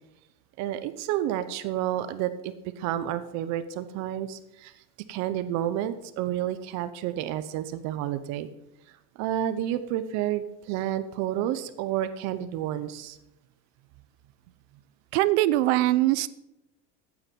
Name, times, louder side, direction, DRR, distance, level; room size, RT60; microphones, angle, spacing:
voice 1, 0.6-4.7 5.1-8.5 9.2-13.2, right 12 dB, 55° right, 12 dB, 0.9 m, -30 dB
voice 2, 15.1-16.3, right 16 dB, 85° right, 17 dB, 0.8 m, -22 dB
13.0 x 8.9 x 5.3 m, 0.91 s
cardioid pair, 150°, 33 cm